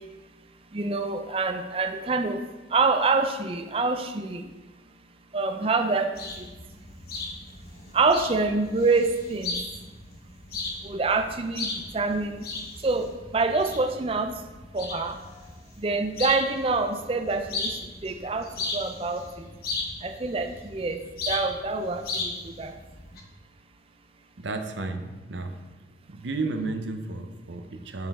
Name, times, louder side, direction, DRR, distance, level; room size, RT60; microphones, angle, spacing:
voice 1, 0.7-2.4 2.7-4.4 5.3-6.1 6.4-6.5 7.9-9.5 10.8-12.5 12.8-13.1 13.3-14.3 14.7-15.2 15.8-17.8 18.0-19.5 20.0-21.0 21.3-22.7, right 3 dB, 30° right, 7 dB, 0.4 m, -26 dB
sound 1, 6.1-23.2, left 3 dB, 55° left, 1.1 m, -37 dB
voice 2, 24.4-25.6 26.1-28.1, right 3 dB, 80° right, 6 dB, 0.7 m, -32 dB
9.4 x 5.3 x 3.6 m, 1.2 s
head